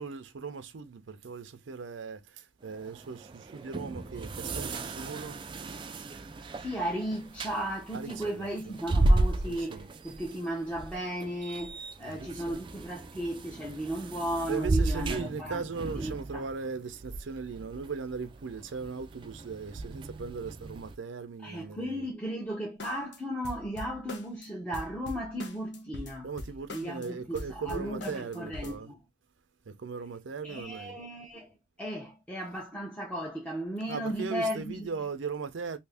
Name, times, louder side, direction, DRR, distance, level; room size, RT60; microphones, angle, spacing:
voice 1, 0.0-5.4 7.9-8.7 9.5-9.9 12.1-12.6 14.5-22.0 26.2-28.9 29.7-31.0 33.9-35.8, right 5 dB, 85° right, 0.5 m, -38 dB
sound 1, 2.6-20.9, right 2 dB, 25° right, 0.3 m, -34 dB
voice 2, 6.6-15.6 16.0-16.4 21.4-26.3 26.7-29.0 30.4-31.5 31.8-34.9, equal, 5° left, 0.7 m, -35 dB
sound 2, 22.8-23.2 23.4-24.5 24.7-27.1 27.4-28.8, left 2 dB, 65° left, 0.7 m, -42 dB
2.7 x 2.5 x 3.4 m
head